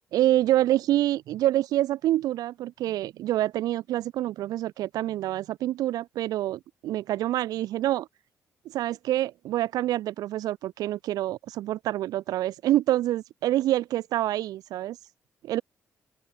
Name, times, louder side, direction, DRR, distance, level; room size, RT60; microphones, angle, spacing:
voice 1, 0.1-8.1 8.7-15.0 15.4-15.6, right 14 dB, 85° right, 1.1 m, -26 dB
open air
cardioid pair, 90°, 6 cm